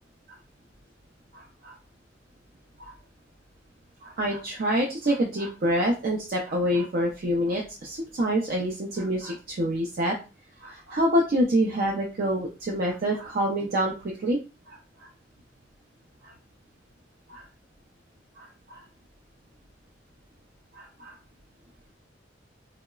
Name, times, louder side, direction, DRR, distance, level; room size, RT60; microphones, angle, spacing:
voice 1, 1.3-1.8 2.8-2.9 4.0-10.2 10.6-14.4 14.7-15.1 16.2-16.3 17.3-17.5 18.4-18.8 20.7-21.2, equal, 50° right, -1 dB, 0.4 m, -27 dB
3.7 x 2.0 x 2.2 m, 0.32 s
head